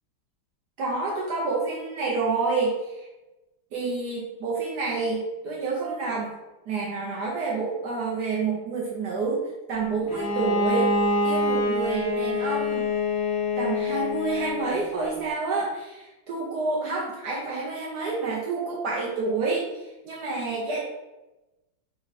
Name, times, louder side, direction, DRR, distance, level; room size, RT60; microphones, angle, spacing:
voice 1, 0.8-3.1 3.7-6.4 6.7-10.9 11.2-12.9 13.6-20.8, right 3 dB, 70° right, -3 dB, 1.0 m, -28 dB
Bowed string instrument, 10.1-14.8, left 2 dB, 45° left, 1.1 m, -26 dB
4.2 x 2.9 x 4.0 m, 1.0 s
omnidirectional pair, 2.4 m